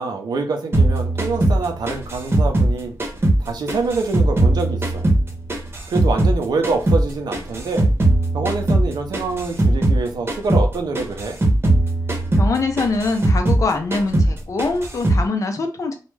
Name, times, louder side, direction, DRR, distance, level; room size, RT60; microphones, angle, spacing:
voice 1, 0.0-2.9 3.4-5.1 5.9-7.9 8.3-11.4, right 3 dB, 80° right, 5 dB, 0.6 m, -25 dB
sound 1, 0.7-3.4 3.7-6.4 6.6-10.0 10.3-10.7 10.9-13.7 13.9-14.3 14.6-15.2, right 1 dB, 35° right, 0.8 m, -18 dB
voice 2, 12.4-15.9, left 3 dB, 50° left, 5 dB, 0.5 m, -23 dB
2.3 x 2.1 x 3.2 m, 0.35 s
wide cardioid pair, 95°, 7 cm